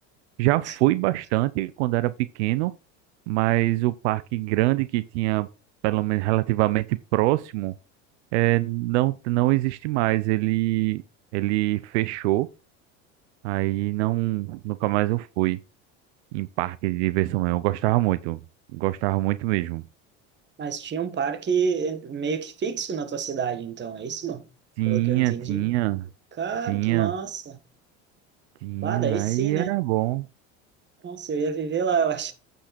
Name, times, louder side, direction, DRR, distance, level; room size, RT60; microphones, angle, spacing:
voice 1, 0.4-2.7 3.3-5.5 5.8-7.7 8.3-11.0 11.3-12.5 13.4-15.6 16.3-18.4 18.7-19.8 24.8-26.1 26.6-27.1 28.6-30.3, right 19 dB, 80° right, 0.6 m, -24 dB
voice 2, 20.6-24.4 24.8-25.7 26.4-27.6 28.8-29.7 31.0-32.3, right 6 dB, 30° right, 1.6 m, -28 dB
8.5 x 5.5 x 4.2 m
supercardioid pair, 100°, 34 cm